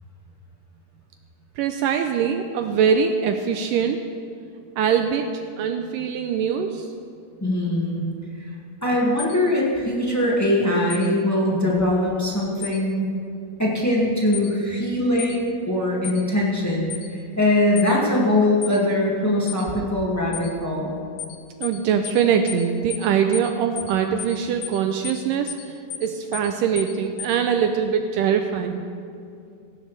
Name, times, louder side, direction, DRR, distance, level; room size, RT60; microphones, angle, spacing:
voice 1, 1.6-4.0 4.8-6.9 21.6-25.8 26.0-28.9, right 7 dB, 85° right, 5 dB, 1.9 m, -23 dB
voice 2, 7.4-8.1 8.4-8.5 8.8-13.1 13.6-20.9, left 1 dB, 20° left, -5 dB, 0.5 m, -22 dB
sound 1, 9.2-9.4 10.9-11.1 12.6-12.8 14.3-14.5 15.2-15.4 16.0-16.2 16.9-17.1 17.8-17.9 18.6-18.8 19.5-19.6 20.3-20.5 21.2-21.4 21.6-21.8 22.0-22.2 22.5-22.6 22.9-23.1 23.3-23.5 23.8-23.9 24.2-24.4 24.6-24.8 25.0-25.2 25.5-25.6 25.9-26.1 26.3-26.5 26.8-26.9 27.2-27.3, left 9 dB, 75° left, 2.5 m, -33 dB
16.5 x 16.0 x 3.3 m, 2.4 s
omnidirectional pair, 4.4 m